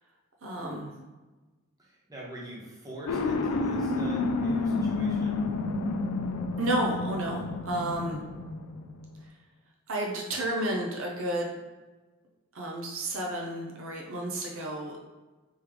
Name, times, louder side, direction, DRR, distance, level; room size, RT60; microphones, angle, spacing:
voice 1, 0.4-0.9 6.6-8.2 9.9-11.6 12.5-15.0, right 1 dB, 60° right, -1 dB, 0.6 m, -31 dB
voice 2, 1.8-5.5, right 1 dB, 15° right, -4 dB, 0.8 m, -43 dB
sound 1, 3.1-9.1, left 3 dB, 80° left, 0.4 m, -30 dB
3.6 x 3.0 x 3.3 m, 1.2 s
head